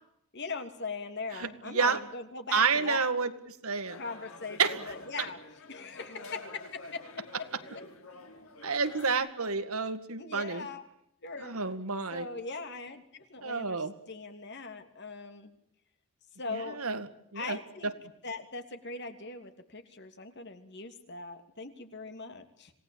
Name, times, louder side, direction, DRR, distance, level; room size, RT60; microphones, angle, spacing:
voice 1, 0.3-3.1 3.9-4.6 4.9-5.4 5.7-7.5 10.2-10.8 11.2-11.6 12.1-15.5 16.4-16.8 17.3-17.9 18.2-22.7, left 4 dB, 50° left, 8 dB, 2.9 m, -40 dB
voice 2, 1.3-2.0 2.5-3.3 3.6-4.0 4.6-4.7 8.6-10.6 11.4-12.3 13.4-13.9 16.5-17.1 17.3-17.6 17.8-17.9, right 5 dB, 75° right, 10 dB, 2.1 m, -29 dB
sound 1, 3.8-9.1, left 2 dB, 65° left, 4.6 m, -47 dB
27.0 x 18.5 x 8.7 m, 0.76 s
head